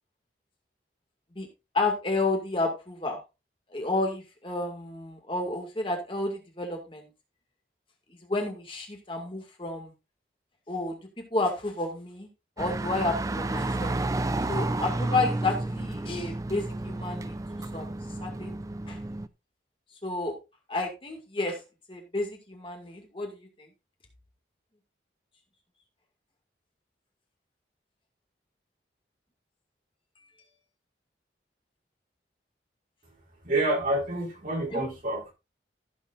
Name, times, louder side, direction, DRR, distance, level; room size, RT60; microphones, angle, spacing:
voice 1, 1.7-3.2 3.7-7.1 8.3-9.9 10.7-11.0 11.3-12.3 12.6-13.9 14.5-17.4 17.7-17.9 18.2-19.0 20.0-20.3 20.7-21.6 21.9-23.7 34.7-34.8, left 2 dB, 30° left, 2 dB, 2.1 m, -31 dB
sound 1, 12.6-19.3, right 2 dB, 20° right, 0.4 m, -31 dB
voice 2, 33.4-35.3, right 1 dB, 50° right, -1 dB, 4.2 m, -28 dB
15.5 x 7.3 x 2.6 m, 0.27 s
head